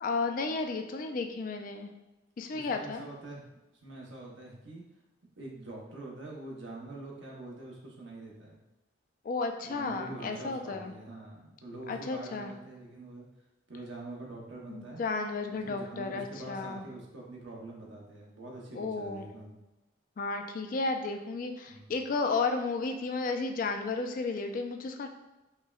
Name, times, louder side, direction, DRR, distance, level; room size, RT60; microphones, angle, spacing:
voice 1, 0.0-1.9 2.4-3.0 9.2-10.9 11.9-12.5 14.7-16.8 18.7-19.3 20.2-25.1, left 3 dB, 45° left, 5 dB, 0.3 m, -33 dB
voice 2, 2.5-3.4 3.8-4.8 5.4-8.6 9.6-13.2 13.7-15.0 15.6-19.6 21.7-21.9, right 2 dB, 70° right, -2 dB, 0.8 m, -44 dB
5.3 x 2.1 x 2.3 m, 1.0 s
head